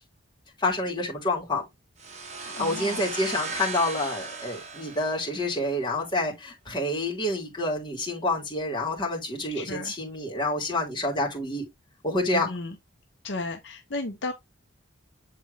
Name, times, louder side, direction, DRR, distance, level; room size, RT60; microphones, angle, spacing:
voice 1, 0.6-1.6 2.4-11.6 12.0-12.5, left 2 dB, 20° left, 3.1 m, -28 dB
sound 1, 2.0-5.7, right 4 dB, 35° right, 1.1 m, -37 dB
voice 2, 2.5-3.0 9.5-9.9 12.3-12.8 13.2-14.3, left 2 dB, 65° left, 0.8 m, -34 dB
7.5 x 4.2 x 3.4 m
head